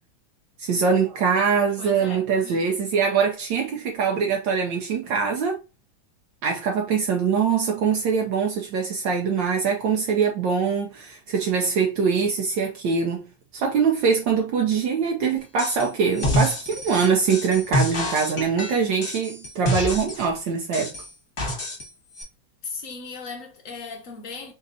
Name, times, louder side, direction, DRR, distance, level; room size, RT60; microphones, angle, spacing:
voice 1, 0.6-5.6 6.4-13.3 13.5-20.9, right 6 dB, 70° right, 1.3 m, -23 dB
voice 2, 1.8-2.6 22.6-24.5, left 4 dB, 65° left, 0.8 m, -37 dB
sound 1, 15.6-15.9 16.2-20.3 20.7-21.9 22.2-22.3, equal, 30° left, 1.3 m, -27 dB
4.0 x 3.8 x 2.6 m
omnidirectional pair, 2.2 m